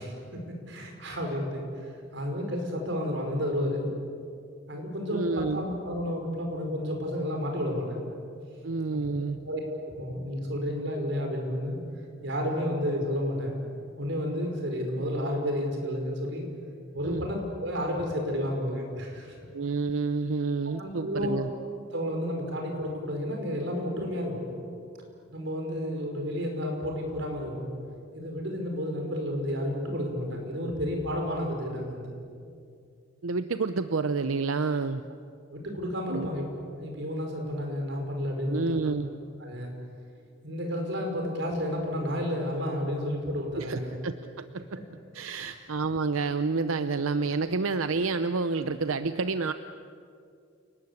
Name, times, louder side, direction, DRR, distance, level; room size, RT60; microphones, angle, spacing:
voice 1, 0.0-3.9 4.7-8.1 8.9-9.2 9.4-9.6 10.0-11.8 12.2-13.6 14.0-16.5 16.9-19.4 20.8-21.4 21.9-24.5 25.3-27.7 28.1-32.1 35.5-38.8 39.4-39.7 40.4-43.9 45.2-45.5, equal, 60° right, 2 dB, 5.3 m, -31 dB
voice 2, 5.1-5.6 8.6-9.4 17.0-17.3 19.5-21.5 33.2-35.0 36.1-36.3 38.5-39.1 43.6-44.8 45.1-49.5, right 4 dB, 90° right, 10 dB, 0.7 m, -29 dB
29.0 x 19.0 x 8.3 m, 2.4 s
head